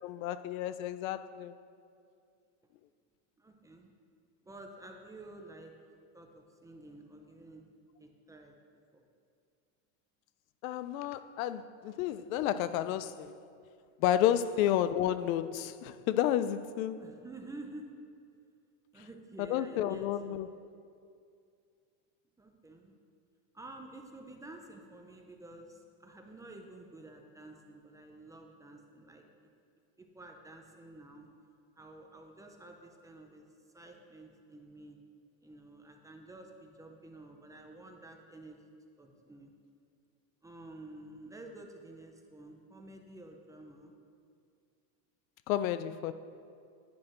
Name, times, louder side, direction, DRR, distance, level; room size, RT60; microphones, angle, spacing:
voice 1, 0.0-1.5 10.6-13.3 14.0-17.0 19.4-20.5 45.5-46.1, left 11 dB, 80° left, 0.5 m, -31 dB
voice 2, 3.4-3.9 4.4-5.7 6.1-7.6 8.0-8.6 8.9-9.0 14.5-14.7 16.9-17.9 18.9-20.4 22.4-22.9 23.5-29.2 30.0-31.3 31.8-33.4 33.7-35.0 35.4-38.6 39.0-39.5 40.4-43.9, right 2 dB, 10° right, 0.4 m, -50 dB
10.5 x 9.6 x 2.5 m
supercardioid pair, 130°, 40 cm